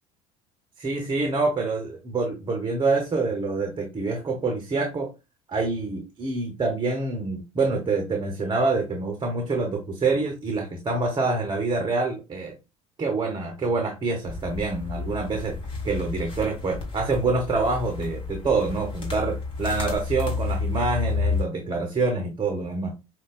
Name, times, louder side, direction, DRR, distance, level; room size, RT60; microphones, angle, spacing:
voice 1, 0.8-5.1 5.5-12.5 13.0-15.6 15.8-22.9, right 3 dB, 25° right, 4 dB, 0.8 m, -26 dB
sound 1, 14.2-21.4, left 4 dB, 30° left, 1.6 m, -31 dB
5.1 x 2.2 x 2.2 m, 0.27 s
hypercardioid pair, 65°, 18 cm